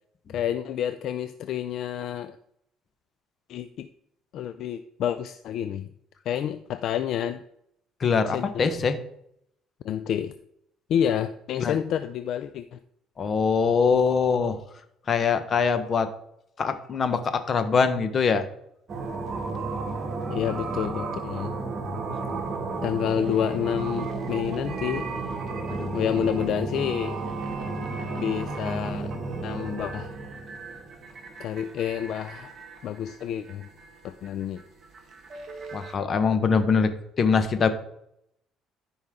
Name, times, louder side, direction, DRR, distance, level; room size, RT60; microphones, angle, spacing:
voice 1, 0.3-2.4 3.5-3.9 4.3-5.9 6.3-7.4 8.3-8.7 9.8-10.3 10.9-12.8 20.3-21.5 22.8-25.1 25.9-27.2 28.2-29.1 29.4-30.1 31.4-32.5 32.8-33.7 34.0-34.6, left 9 dB, 65° left, 11 dB, 0.4 m, -29 dB
voice 2, 8.0-9.0 11.6-11.7 13.2-14.6 15.1-16.1 16.6-18.4 25.8-25.9 35.7-36.9 37.2-37.7, left 5 dB, 40° left, 10 dB, 1.1 m, -23 dB
sound 1, 18.9-35.9, right 3 dB, 45° right, 1.9 m, -33 dB
14.0 x 5.4 x 3.7 m, 0.75 s
cardioid pair, 110°, 0 cm